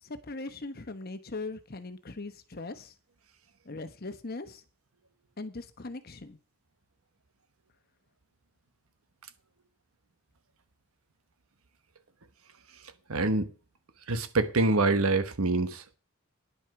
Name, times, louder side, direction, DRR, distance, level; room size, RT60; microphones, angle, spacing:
voice 1, 0.0-2.9 3.6-4.6 5.4-6.4, left 3 dB, 45° left, 1.1 m, -40 dB
voice 2, 13.1-13.5 14.1-16.0, right 3 dB, 85° right, 1.1 m, -26 dB
10.0 x 7.9 x 5.9 m
head